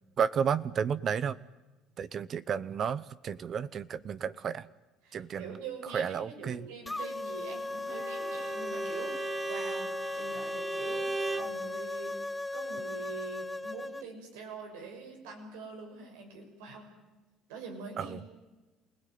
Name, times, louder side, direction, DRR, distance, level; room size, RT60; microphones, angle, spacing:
voice 1, 0.2-1.4 2.0-4.7 5.1-5.6 5.8-6.6 18.0-18.3, right 7 dB, 45° right, 17 dB, 0.9 m, -32 dB
voice 2, 5.0-11.1 11.4-12.3 12.5-16.9 17.5-18.2, right 4 dB, 90° right, 3 dB, 6.5 m, -44 dB
sound 1, 6.9-14.1, left 2 dB, 10° left, 0.7 m, -37 dB
Bowed string instrument, 7.9-11.6, right 3 dB, 25° right, 1.7 m, -37 dB
28.0 x 17.5 x 9.4 m, 1.2 s
supercardioid pair, 90°, 0 cm